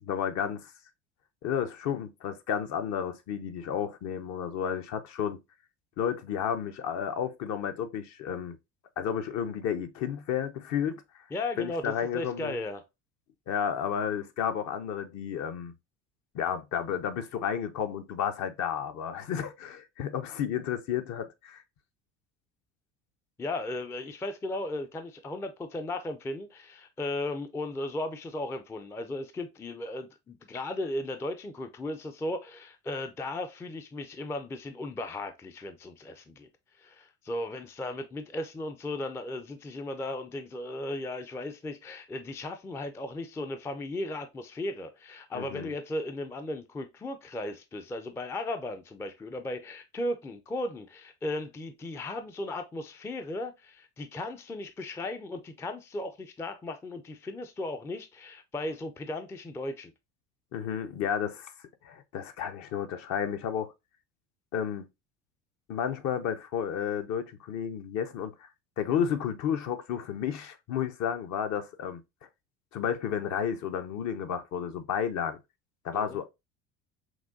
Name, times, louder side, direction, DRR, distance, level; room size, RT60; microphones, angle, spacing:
voice 1, 0.0-0.7 1.4-5.4 6.0-8.6 9.0-11.0 11.6-12.6 13.5-15.7 16.3-21.6 45.3-45.7 60.5-61.5 61.8-63.7 64.5-64.9 65.7-68.5 68.8-72.0 72.7-75.4 75.8-76.3, left 8 dB, 50° left, 0.7 m, -32 dB
voice 2, 11.3-12.8 23.4-36.5 36.8-59.9 75.9-76.2, left 2 dB, 10° left, 0.3 m, -36 dB
6.0 x 2.3 x 2.5 m
hypercardioid pair, 80°, 37 cm